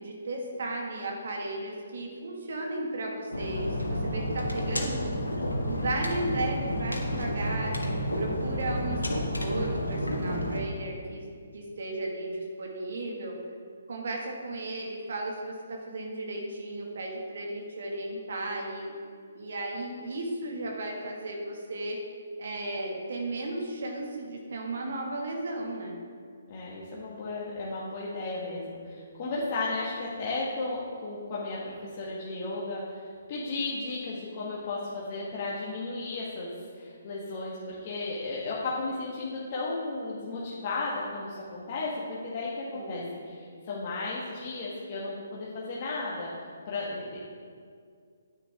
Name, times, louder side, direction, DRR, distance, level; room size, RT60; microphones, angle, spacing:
voice 1, 0.0-5.0 5.7-7.7 8.2-13.4 13.9-18.9 19.3-22.0 22.4-26.0 42.7-43.1, right 2 dB, 55° right, 0 dB, 1.9 m, -35 dB
sound 1, 3.3-10.6, equal, 85° left, 1.6 m, -30 dB
voice 2, 26.5-46.3 46.7-47.2, left 3 dB, 40° left, -6 dB, 1.6 m, -34 dB
9.8 x 9.1 x 3.6 m, 2.1 s
figure-of-eight pair, 135°, 0 cm